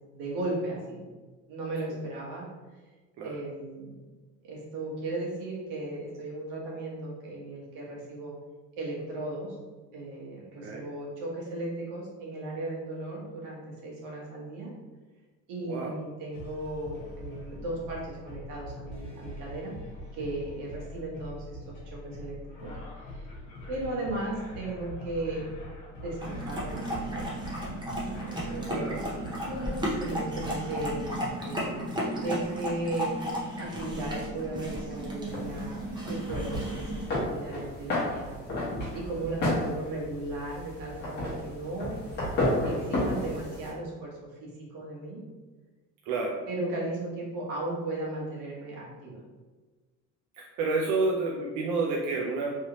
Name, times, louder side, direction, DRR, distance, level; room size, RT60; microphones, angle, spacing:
voice 1, 0.1-1.0 1.5-2.4 3.2-3.9 4.4-8.3 8.8-9.6 9.9-14.7 15.5-19.7 20.1-22.7 23.0-23.3 23.7-25.4 26.0-27.3 28.1-28.9 30.0-33.2 33.6-38.4 38.9-41.9 42.6-45.2 46.5-49.2, right 2 dB, 80° right, -3 dB, 1.3 m, -36 dB
voice 2, 15.6-15.9 28.7-29.0 46.1-46.4 50.4-52.5, right 3 dB, 60° right, -2 dB, 0.5 m, -29 dB
sound 1, 16.3-31.3, left 1 dB, 65° left, 1.2 m, -43 dB
sound 2, 26.2-37.1, right 1 dB, 15° right, 0.6 m, -34 dB
sound 3, 35.3-43.7, left 1 dB, 30° left, 1.1 m, -32 dB
3.2 x 2.8 x 2.9 m, 1.3 s
cardioid pair, 155°, 33 cm